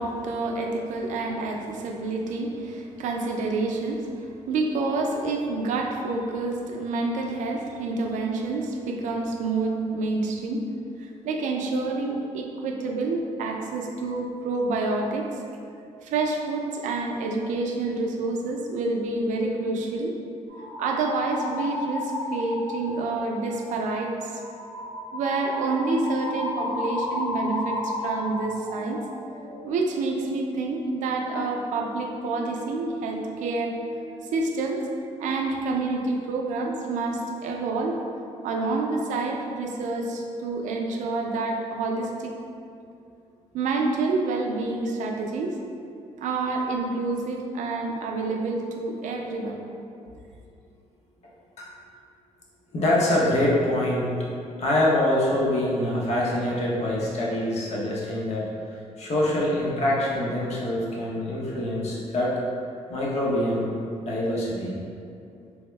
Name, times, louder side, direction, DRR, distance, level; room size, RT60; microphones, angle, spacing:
voice 1, 0.0-10.6 11.0-15.4 16.0-20.2 20.8-24.4 25.1-29.0 29.6-33.7 34.3-34.8 35.2-37.9 38.4-42.3 43.5-45.6 46.2-49.6, right 3 dB, 85° right, 1 dB, 0.4 m, -28 dB
sound 1, 20.5-23.1 23.4-23.7 24.2-34.5 34.8-35.5, left 2 dB, 75° left, 1.1 m, -35 dB
voice 2, 52.7-54.2 54.6-58.4 59.0-62.3 62.9-63.7 64.0-64.8, left 1 dB, 60° left, -4 dB, 0.7 m, -24 dB
3.4 x 2.1 x 3.1 m, 2.5 s
cardioid pair, 105°, 13 cm